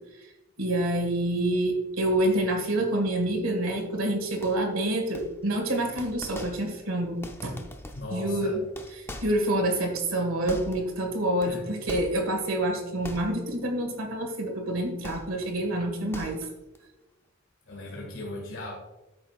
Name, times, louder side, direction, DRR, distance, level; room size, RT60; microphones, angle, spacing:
voice 1, 0.6-7.6 8.1-8.6 9.2-16.4, right 1 dB, 75° right, 3 dB, 1.8 m, -27 dB
sound 1, 4.4-4.8 5.1-5.6 6.0-6.9 7.2-8.2 8.6-11.0 11.4-12.5 13.0-13.6 13.9-14.1 15.0-15.6 15.9-16.8, left 1 dB, 10° left, 0.6 m, -42 dB
voice 2, 7.9-8.6 11.5-11.6 17.7-18.8, left 2 dB, 65° left, -1 dB, 2.0 m, -37 dB
12.5 x 6.3 x 2.4 m, 1.0 s
head